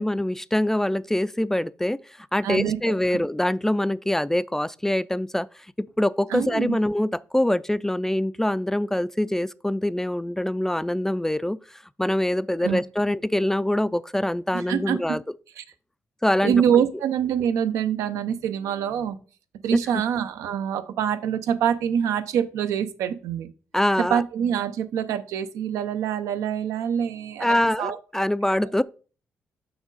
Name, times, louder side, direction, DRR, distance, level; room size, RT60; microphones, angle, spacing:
voice 1, 0.0-15.2 16.2-16.6 19.7-19.8 23.7-24.2 27.4-28.8, left 1 dB, 10° left, 0.3 m, -24 dB
voice 2, 2.4-3.2 6.3-6.8 12.6-12.8 14.5-15.2 15.6-15.7 16.4-19.2 19.6-23.5 24.0-28.0, right 8 dB, 90° right, 0.7 m, -25 dB
6.3 x 6.0 x 4.0 m
cardioid pair, 65°, 5 cm